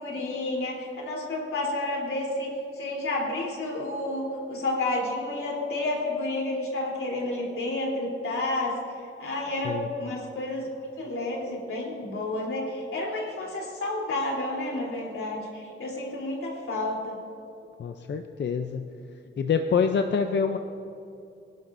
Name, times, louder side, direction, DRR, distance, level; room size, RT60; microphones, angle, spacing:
voice 1, 0.0-8.8 9.2-10.7 11.0-17.2, left 2 dB, 90° left, -3 dB, 3.5 m, -30 dB
voice 2, 17.8-18.8 19.4-20.6, left 6 dB, 60° left, 6 dB, 0.6 m, -26 dB
23.0 x 11.5 x 2.6 m, 2.7 s
wide cardioid pair, 125°, 21 cm